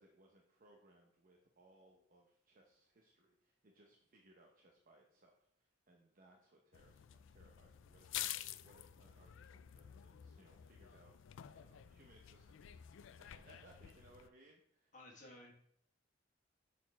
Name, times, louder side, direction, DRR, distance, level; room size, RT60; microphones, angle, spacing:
voice 1, 0.0-11.1 11.5-14.9, right 1 dB, 45° right, 0 dB, 0.8 m, -67 dB
sound 1, 6.7-14.3, left 12 dB, 70° left, 0.3 m, -50 dB
voice 2, 14.9-15.5, left 1 dB, 40° left, -1 dB, 1.6 m, -55 dB
6.5 x 4.2 x 4.6 m, 0.68 s
head